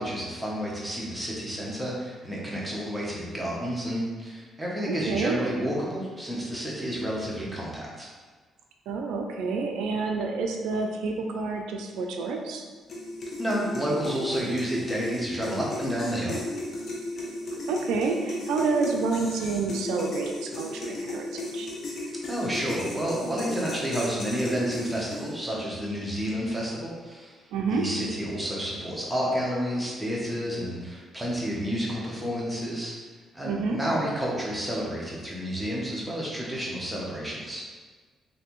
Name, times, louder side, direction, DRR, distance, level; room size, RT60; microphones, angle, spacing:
voice 1, 0.0-8.1 13.4-16.4 22.3-27.4 27.7-32.9 33.3-37.6, equal, 5° right, -5 dB, 0.9 m, -30 dB
voice 2, 4.9-5.4 8.9-12.6 17.7-21.7 27.5-27.8 33.4-33.8, right 4 dB, 90° right, 2 dB, 0.3 m, -28 dB
sound 1, 12.9-25.5, left 1 dB, 55° left, 0.7 m, -35 dB
3.2 x 2.6 x 2.9 m, 1.4 s
cardioid pair, 90°, 0 cm